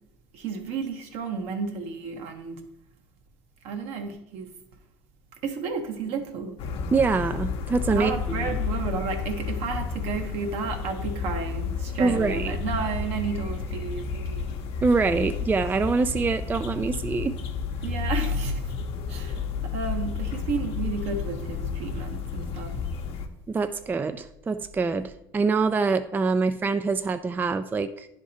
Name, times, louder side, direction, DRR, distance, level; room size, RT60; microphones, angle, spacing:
voice 1, 0.3-2.6 3.6-4.5 5.4-6.6 7.9-14.6 17.8-18.7 19.1-22.8, right 5 dB, 65° right, 1.1 m, -32 dB
sound 1, 6.6-23.3, left 5 dB, 60° left, 0.8 m, -31 dB
voice 2, 6.9-8.5 12.0-12.6 14.8-17.4 23.5-28.1, right 4 dB, 15° right, 0.3 m, -25 dB
10.0 x 3.6 x 4.2 m
supercardioid pair, 85°, 11 cm